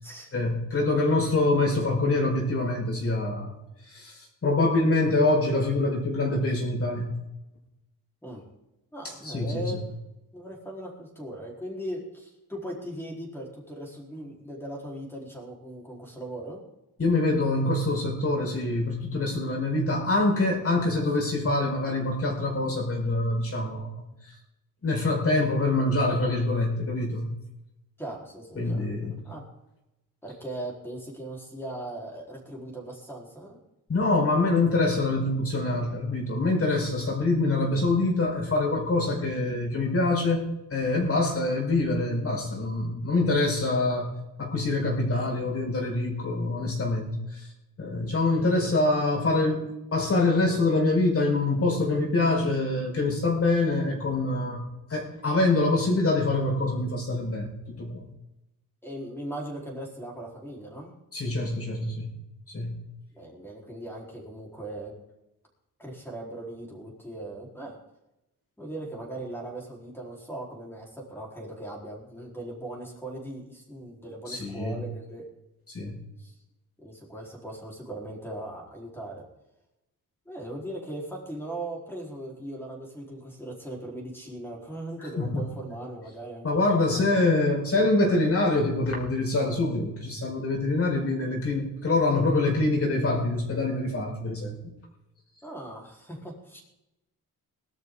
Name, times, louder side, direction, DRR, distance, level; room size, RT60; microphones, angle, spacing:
voice 1, 0.3-3.6 3.9-7.1 9.0-9.8 17.0-24.3 24.8-27.3 28.5-29.2 33.9-44.1 44.4-47.5 47.8-58.0 61.1-62.1 62.5-62.8 74.3-74.8 75.7-76.0 85.0-85.5 86.4-94.6, left 2 dB, 40° left, 0 dB, 5.1 m, -25 dB
voice 2, 8.9-9.8 10.3-16.6 28.0-29.4 30.2-33.6 58.8-60.9 63.1-64.9 65.8-67.8 68.6-75.2 76.2-76.3 76.8-79.2 80.3-87.2 95.4-96.6, right 1 dB, 5° left, -2 dB, 4.4 m, -39 dB
20.0 x 12.5 x 3.9 m, 0.91 s
wide cardioid pair, 135°, 35 cm